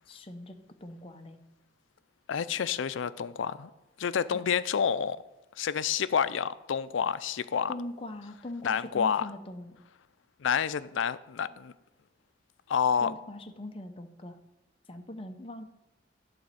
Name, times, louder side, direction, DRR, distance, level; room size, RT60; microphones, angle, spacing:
voice 1, 0.1-1.4 4.3-4.4 7.7-9.8 13.0-14.4 14.9-15.7, left 1 dB, 30° left, 0.7 m, -41 dB
voice 2, 2.3-3.7 4.0-5.2 5.6-7.7 8.6-9.3 10.4-11.7 12.7-13.2, left 7 dB, 85° left, 0.4 m, -29 dB
11.0 x 4.2 x 7.6 m
head